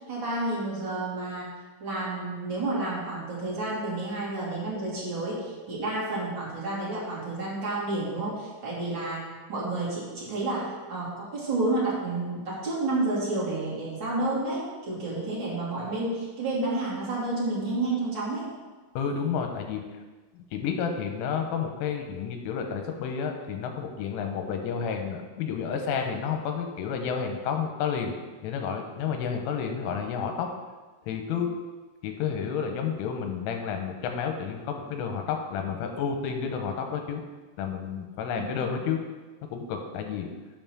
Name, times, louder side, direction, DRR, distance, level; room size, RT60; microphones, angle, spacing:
voice 1, 0.0-1.5 1.8-18.5 38.3-38.6, right 2 dB, 35° right, -7 dB, 2.0 m, -30 dB
voice 2, 19.0-19.8 20.3-28.1 28.4-30.5 31.0-31.5 32.0-37.2 37.6-39.0 39.5-40.3, left 6 dB, 85° left, 4 dB, 3.2 m, -30 dB
7.1 x 5.5 x 6.1 m, 1.3 s
omnidirectional pair, 5.8 m